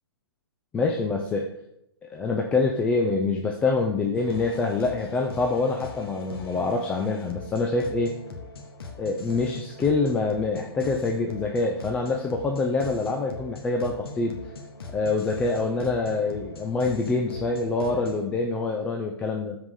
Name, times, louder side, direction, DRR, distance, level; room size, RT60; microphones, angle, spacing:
voice 1, 0.7-1.5 2.1-8.1 9.0-14.4 14.9-19.6, left 3 dB, 10° left, 1 dB, 0.5 m, -25 dB
sound 1, 4.1-18.3, left 3 dB, 60° left, 1.8 m, -41 dB
13.5 x 4.9 x 3.8 m, 0.79 s
hypercardioid pair, 155°, 14 cm